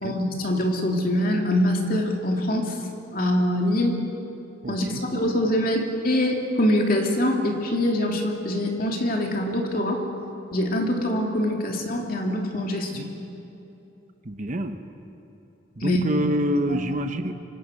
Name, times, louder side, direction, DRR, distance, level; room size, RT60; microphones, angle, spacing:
voice 1, 0.0-2.8 3.1-4.0 4.7-10.0 10.5-12.9 15.8-16.0 16.7-16.9, left 1 dB, 45° left, 1 dB, 2.9 m, -24 dB
voice 2, 4.6-5.0 12.9-13.1 14.2-14.8 15.8-17.3, equal, 40° right, 7 dB, 1.0 m, -27 dB
25.0 x 25.0 x 6.5 m, 3.0 s
head